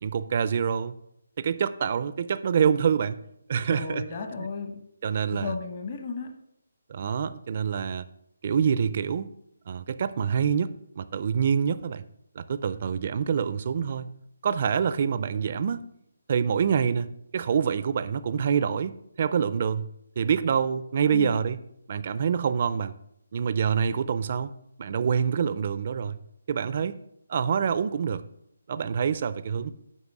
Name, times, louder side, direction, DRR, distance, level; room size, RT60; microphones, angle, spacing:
voice 1, 0.0-0.9 1.4-3.2 3.5-4.1 4.4-4.5 5.0-5.5 6.9-8.1 8.4-9.3 9.7-12.0 12.4-14.1 14.4-15.8 16.3-17.1 17.3-19.9 20.2-21.6 21.9-23.0 23.3-24.5 24.8-26.2 26.5-27.0 27.3-28.2 28.7-29.7, right 7 dB, 40° right, 14 dB, 0.4 m, -26 dB
voice 2, 3.7-4.8 5.3-6.3 21.1-21.3, left 4 dB, 40° left, 4 dB, 0.9 m, -34 dB
8.3 x 5.1 x 6.0 m, 0.76 s
hypercardioid pair, 165°, 0 cm